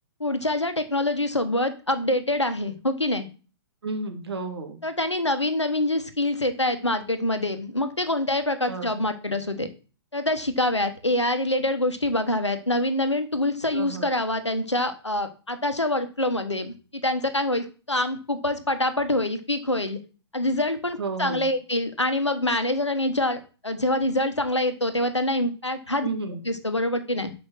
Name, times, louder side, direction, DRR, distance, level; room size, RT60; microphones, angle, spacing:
voice 1, 0.2-3.3 4.8-9.7 10.1-20.0 20.3-26.1 26.4-27.3, left 1 dB, 85° left, 8 dB, 1.1 m, -25 dB
voice 2, 3.8-4.8 8.7-9.1 13.7-14.1 21.0-21.5 26.0-26.4, right 4 dB, 65° right, 5 dB, 1.9 m, -32 dB
6.5 x 5.3 x 6.1 m, 0.36 s
figure-of-eight pair, 115°, 14 cm